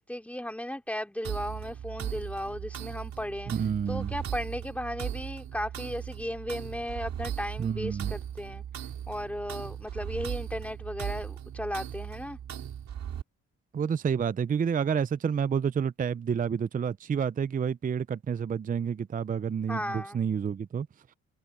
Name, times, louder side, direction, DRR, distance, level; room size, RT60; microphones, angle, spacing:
voice 1, 0.0-3.5 3.9-8.6 9.1-12.4 19.7-20.2, left 1 dB, 5° left, 2.9 m, -35 dB
sound 1, 1.2-13.2, right 9 dB, 65° right, 5.5 m, -38 dB
voice 2, 3.5-4.1 7.6-8.1 13.7-20.9, right 7 dB, 30° right, 0.5 m, -29 dB
cardioid pair, 90°, 30 cm